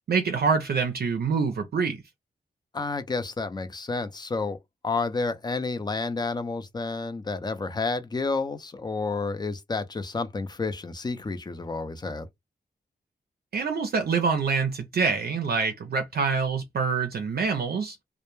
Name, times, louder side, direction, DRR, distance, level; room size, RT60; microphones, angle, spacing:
voice 1, 0.1-2.0 13.5-18.0, right 5 dB, 65° right, 0.5 m, -26 dB
voice 2, 2.7-4.6 4.8-12.3, left 3 dB, 25° left, 0.5 m, -30 dB
2.1 x 2.1 x 3.0 m
wide cardioid pair, 80°, 18 cm